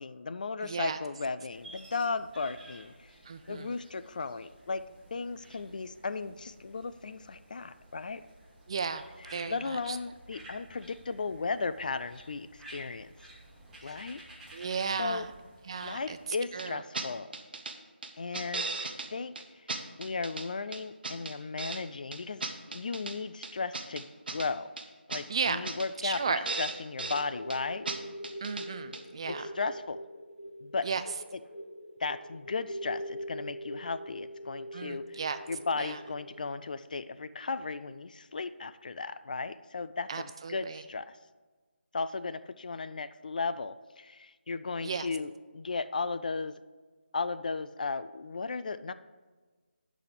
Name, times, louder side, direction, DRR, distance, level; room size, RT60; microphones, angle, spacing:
voice 1, 0.0-2.9 3.5-4.8 5.1-8.2 9.5-13.1 13.8-14.2 15.0-15.3 15.8-17.3 18.2-19.3 20.0-24.7 25.1-27.9 29.6-30.0 30.6-30.9 32.0-35.0 35.5-41.2 41.9-46.5 47.1-48.9, left 4 dB, 45° left, 13 dB, 0.3 m, -35 dB
voice 2, 0.6-1.0 3.3-3.8 8.7-10.0 13.8-14.0 14.5-15.3 15.6-16.2 16.5-16.8 25.3-25.6 26.0-26.4 28.4-29.5 30.8-31.0 34.7-35.4 35.8-36.0 40.1-40.8 44.8-45.1, right 5 dB, 30° right, 10 dB, 0.3 m, -34 dB
sound 1, 1.5-16.3, right 1 dB, 5° right, 1.1 m, -53 dB
sound 2, 16.6-16.7 16.9-17.1 17.3-17.7 18.0-19.1 19.4-19.5 19.7-20.5 20.7-21.8 22.1-23.1 23.4-24.5 24.8-24.9 25.1-25.2 25.5-25.9 26.1-26.2 26.5-27.2 27.5-27.6 27.9-28.0 28.2-28.7 28.9-29.0, right 3 dB, 55° right, 1.0 m, -36 dB
sound 3, 27.0-36.9, equal, 60° left, 1.4 m, -43 dB
11.5 x 4.1 x 6.6 m, 1.3 s
figure-of-eight pair, 165°, 6 cm